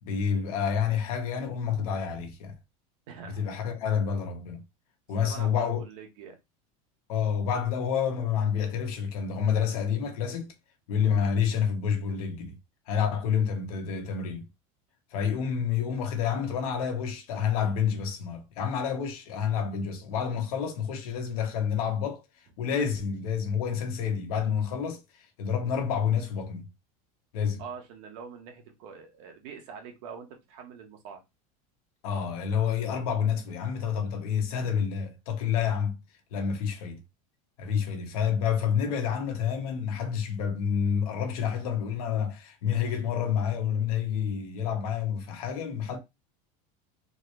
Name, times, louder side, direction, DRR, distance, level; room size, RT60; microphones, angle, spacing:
voice 1, 0.0-2.6 3.2-4.6 5.1-5.8 7.1-10.5 10.9-12.5 12.9-14.5 15.1-22.2 22.6-26.7 27.3-27.6 32.0-36.0 36.3-37.0 37.6-46.0, left 7 dB, 80° left, 1.4 m, -28 dB
voice 2, 3.1-3.5 5.2-6.4 27.6-31.2 37.8-37.9, right 6 dB, 60° right, 1.4 m, -44 dB
3.9 x 3.2 x 3.3 m
supercardioid pair, 170°, 18 cm